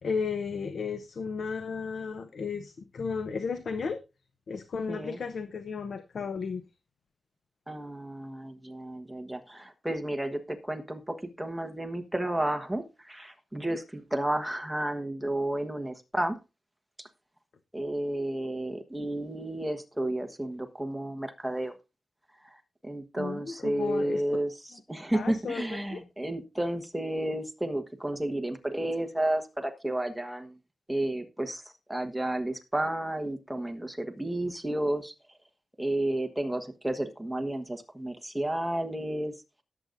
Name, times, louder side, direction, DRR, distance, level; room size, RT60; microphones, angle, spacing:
voice 1, 0.0-4.0 4.5-6.6 23.2-24.2 25.1-25.6 25.9-26.0, left 5 dB, 65° left, 9 dB, 0.8 m, -34 dB
voice 2, 4.9-5.2 7.7-16.4 17.0-17.1 17.7-21.7 22.4-30.5 30.9-31.6 31.9-35.1 35.8-39.3, right 1 dB, 5° right, 6 dB, 1.3 m, -32 dB
18.0 x 7.9 x 2.6 m, 0.28 s
wide cardioid pair, 165°, 0 cm